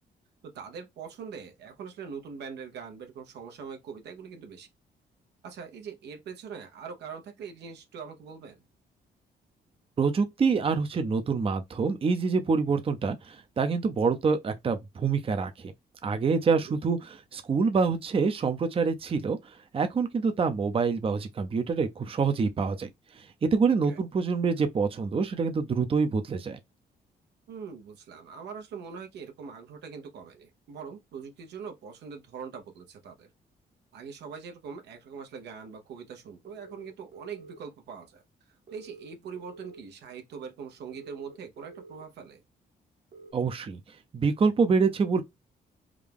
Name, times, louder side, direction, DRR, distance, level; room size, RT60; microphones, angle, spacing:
voice 1, 0.4-4.7 5.4-8.6 16.4-16.8 23.7-24.0 27.5-33.3 33.9-42.4, right 6 dB, 85° right, 1.0 m, -42 dB
voice 2, 10.0-15.7 16.0-22.9 23.2-26.6 43.3-43.8 44.1-45.2, right 5 dB, 35° right, 0.6 m, -26 dB
sound 1, 36.4-37.6 38.7-39.8 40.9-42.0 43.1-43.3, right 3 dB, 60° right, 1.3 m, -48 dB
3.7 x 2.3 x 3.4 m
cardioid pair, 90°, 17 cm